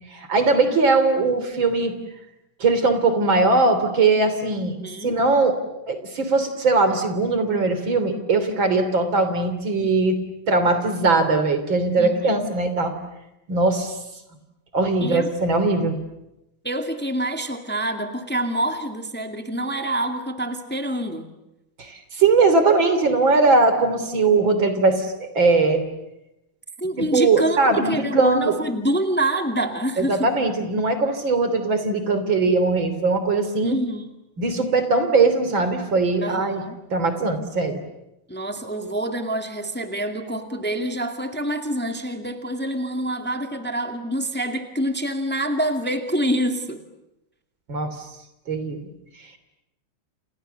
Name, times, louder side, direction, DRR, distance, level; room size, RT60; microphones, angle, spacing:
voice 1, 0.1-1.9 2.6-4.8 5.0-5.6 5.9-10.2 10.5-12.9 13.5-14.0 14.7-16.0 21.8-25.8 27.0-28.5 30.0-33.8 34.4-36.6 36.9-37.8 47.7-47.9 48.5-48.8, right 3 dB, 65° right, 9 dB, 3.9 m, -20 dB
voice 2, 4.8-5.1 12.0-12.5 15.0-15.3 16.6-21.3 26.8-30.3 33.6-34.0 36.2-36.8 38.3-46.8, right 1 dB, 5° left, 5 dB, 2.0 m, -26 dB
30.0 x 29.0 x 6.9 m, 0.91 s
omnidirectional pair, 2.3 m